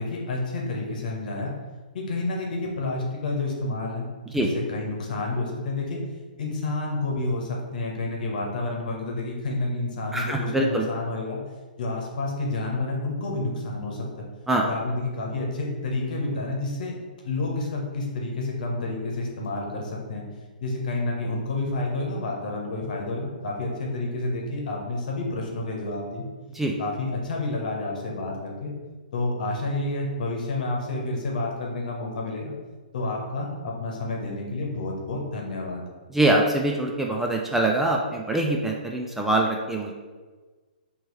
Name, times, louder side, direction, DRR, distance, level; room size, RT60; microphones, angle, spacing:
voice 1, 0.0-1.5 1.9-4.1 4.4-6.0 6.4-11.4 11.8-14.3 14.6-16.9 17.2-20.2 20.6-26.2 26.8-28.7 29.1-32.5 32.9-35.8, left 2 dB, 60° left, 0 dB, 1.1 m, -29 dB
voice 2, 10.1-10.9 14.5-14.6 26.5-26.8 36.1-39.9, right 1 dB, 5° right, 0 dB, 0.3 m, -24 dB
4.3 x 3.0 x 3.2 m, 1.4 s
hypercardioid pair, 130°, 5 cm